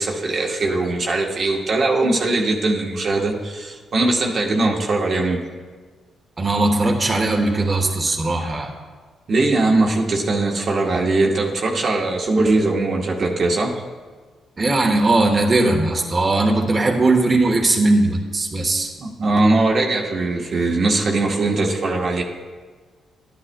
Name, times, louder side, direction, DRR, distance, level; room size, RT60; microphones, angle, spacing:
voice 1, 0.0-5.4 9.3-13.8 19.0-22.2, right 2 dB, 55° right, -1 dB, 1.1 m, -20 dB
voice 2, 6.4-8.7 14.6-18.9, right 2 dB, 35° right, 1 dB, 1.1 m, -19 dB
11.0 x 10.0 x 2.2 m, 1.5 s
supercardioid pair, 55°, 0 cm